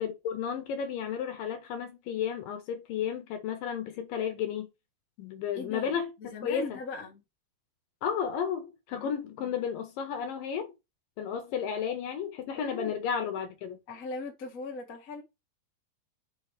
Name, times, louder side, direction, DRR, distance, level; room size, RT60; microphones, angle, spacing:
voice 1, 0.0-4.7 5.2-6.8 8.0-10.7 11.2-13.8, left 7 dB, 70° left, 2.4 m, -33 dB
voice 2, 5.5-7.2 8.9-9.1 9.4-9.6 12.5-13.0 13.9-15.2, left 3 dB, 40° left, 1.3 m, -40 dB
6.6 x 3.1 x 4.8 m
omnidirectional pair, 4.5 m